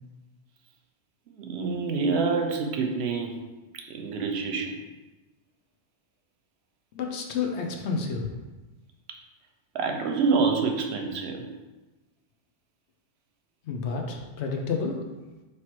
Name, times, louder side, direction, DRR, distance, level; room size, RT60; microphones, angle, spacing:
voice 1, 1.4-3.3 3.7-4.8 9.7-11.4, right 4 dB, 65° right, 3 dB, 0.8 m, -27 dB
voice 2, 6.9-8.3 13.6-15.0, left 5 dB, 70° left, 2 dB, 0.9 m, -30 dB
3.2 x 3.0 x 4.5 m, 1.1 s
omnidirectional pair, 1.2 m